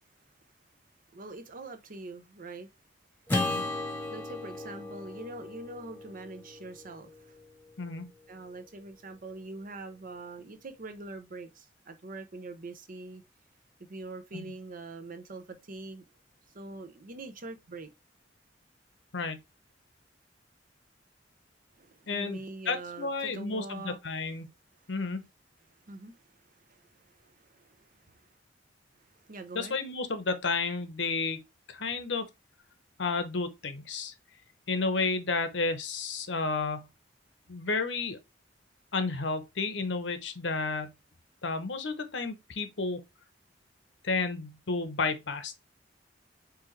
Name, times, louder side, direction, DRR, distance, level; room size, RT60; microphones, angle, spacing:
voice 1, 1.1-2.7 4.1-7.3 8.3-13.2 13.8-16.0 16.5-17.9 21.8-24.0 25.7-28.3 29.0-29.7, right 2 dB, 50° right, 0.7 m, -44 dB
Acoustic guitar / Strum, 3.3-7.7, left 2 dB, 10° left, 1.1 m, -35 dB
voice 2, 22.1-22.4 22.7-24.5 24.9-25.2 29.5-31.4 31.7-32.2 33.0-34.1 34.7-36.9 37.5-38.2 38.9-40.9 41.4-43.0 44.0-45.6, left 4 dB, 75° left, 0.9 m, -31 dB
4.9 x 3.4 x 3.1 m
head